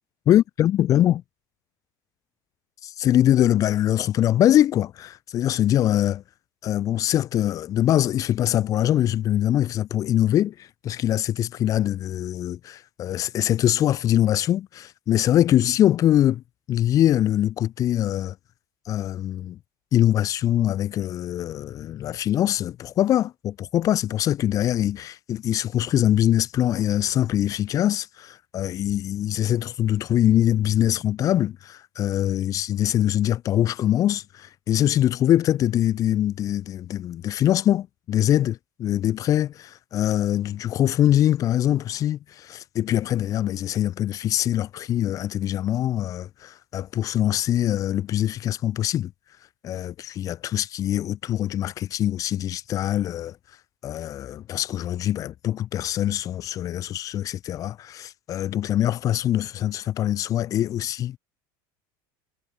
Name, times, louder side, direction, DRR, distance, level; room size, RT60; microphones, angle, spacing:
voice 1, 0.3-1.2 2.8-6.2 6.6-16.4 16.7-18.3 18.9-19.6 19.9-49.1 49.6-53.4 53.8-61.2, left 12 dB, 30° left, 2.1 m, -23 dB
cardioid pair, 170°, 11 cm